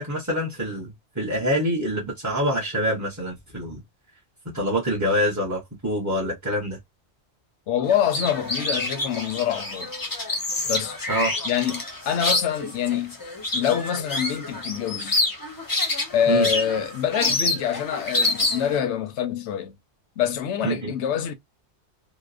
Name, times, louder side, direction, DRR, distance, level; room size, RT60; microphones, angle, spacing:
voice 1, 0.0-3.8 4.5-6.8 11.1-11.3 16.3-16.5 20.6-20.9, equal, 20° right, 0.6 m, -25 dB
voice 2, 7.7-9.9 10.6-11.0 11.4-13.2 13.5-15.2 16.1-19.8 20.2-21.3, left 9 dB, 85° left, 0.9 m, -25 dB
sound 1, 7.9-18.8, left 2 dB, 25° left, 0.5 m, -27 dB
2.9 x 2.0 x 2.4 m
omnidirectional pair, 1.1 m